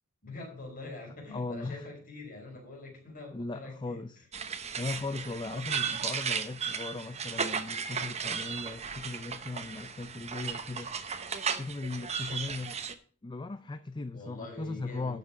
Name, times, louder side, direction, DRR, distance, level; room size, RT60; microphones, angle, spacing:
voice 1, 0.2-4.0 14.1-15.2, left 2 dB, 40° left, 0 dB, 5.3 m, -44 dB
voice 2, 1.3-1.9 3.3-4.2 4.7-10.9 11.6-12.7 13.2-15.2, left 3 dB, 20° left, 12 dB, 0.4 m, -38 dB
sound 1, 4.3-12.9, right 6 dB, 30° right, 0.9 m, -35 dB
12.0 x 5.9 x 6.2 m, 0.42 s
head